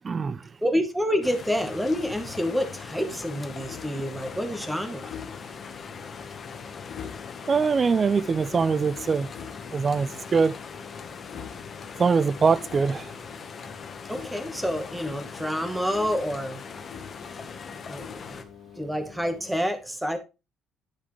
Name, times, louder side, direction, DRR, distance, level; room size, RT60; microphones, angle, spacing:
voice 1, 0.0-0.4 7.5-9.3 9.7-10.6 12.0-13.1, right 5 dB, 25° right, 0.3 m, -23 dB
voice 2, 0.6-5.1 14.1-16.6 17.9-18.2 18.8-20.2, equal, 5° right, 1.2 m, -28 dB
sound 1, 1.2-18.4, left 5 dB, 25° left, 1.1 m, -41 dB
sound 2, 1.4-19.6, left 8 dB, 75° left, 1.6 m, -45 dB
11.0 x 6.7 x 3.1 m
cardioid pair, 170°, 0 cm